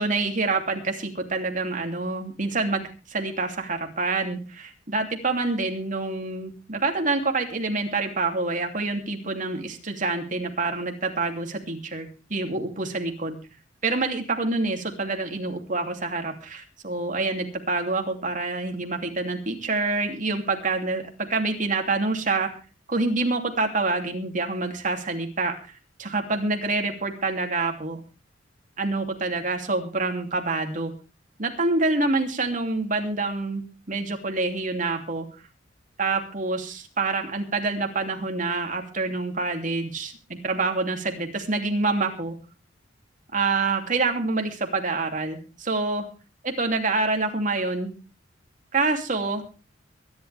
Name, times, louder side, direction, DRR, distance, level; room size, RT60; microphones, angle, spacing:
voice 1, 0.0-13.4 13.8-22.5 22.9-25.5 26.0-28.0 28.8-30.9 31.4-33.6 33.9-35.3 36.0-42.3 43.3-46.0 46.4-47.9 48.7-49.4, right 3 dB, 45° right, 4 dB, 2.9 m, -27 dB
23.5 x 11.5 x 3.5 m, 0.33 s
head